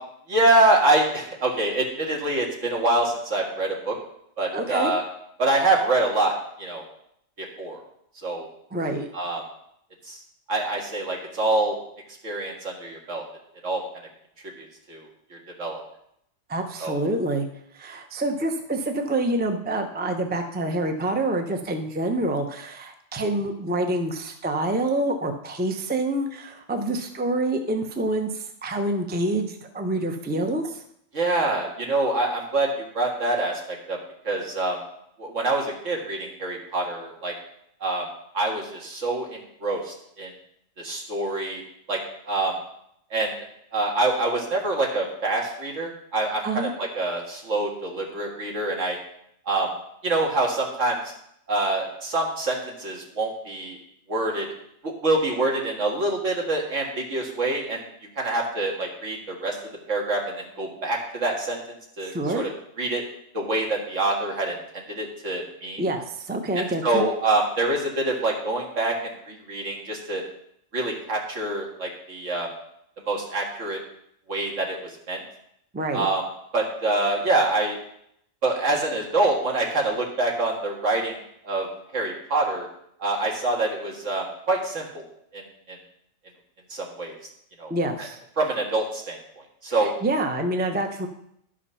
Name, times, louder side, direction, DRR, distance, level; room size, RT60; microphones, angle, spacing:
voice 1, 0.3-4.0 4.4-5.0 5.4-6.8 7.6-7.8 8.2-8.5 9.1-9.4 10.1-10.2 10.5-11.8 12.2-13.2 13.6-13.8 14.6-15.1 15.6-15.8 16.8-16.9 31.1-34.0 34.2-34.8 35.2-37.3 37.8-38.0 38.3-40.3 40.8-41.6 41.9-42.0 42.3-42.5 43.1-43.3 43.7-49.0 49.5-49.7 50.0-51.0 51.5-53.8 54.1-54.5 54.8-57.8 58.2-59.6 59.9-61.6 62.0-62.5 62.8-63.0 63.3-65.8 66.6-68.9 69.3-70.2 70.7-72.5 73.1-73.8 74.3-75.2 75.9-76.2 76.5-77.8 78.4-81.1 81.4-82.7 83.0-85.1 85.3-85.4 85.7-85.8 86.7-87.2 87.6-87.7 88.4-89.2 89.6-89.9, right 2 dB, 70° right, -1 dB, 2.2 m, -25 dB
voice 2, 4.5-4.9 8.7-9.1 16.5-17.5 17.7-30.8 46.4-46.7 62.0-62.5 65.8-67.1 75.7-76.1 87.7-88.2 89.7-91.1, right 2 dB, 10° right, 5 dB, 0.6 m, -27 dB
11.0 x 5.1 x 5.5 m, 0.73 s
omnidirectional pair, 1.3 m